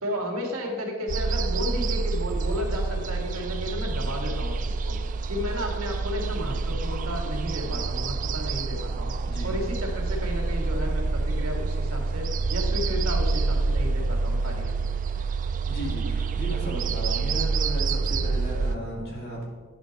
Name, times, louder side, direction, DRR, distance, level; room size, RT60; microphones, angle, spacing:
voice 1, 0.0-5.0 5.3-9.1 9.4-14.7, left 1 dB, 80° right, 1 dB, 1.7 m, -33 dB
sound 1, 1.1-18.8, right 4 dB, 40° right, 0.3 m, -27 dB
voice 2, 15.7-19.5, equal, 50° left, -3 dB, 2.3 m, -35 dB
10.0 x 5.1 x 4.0 m, 1.5 s
head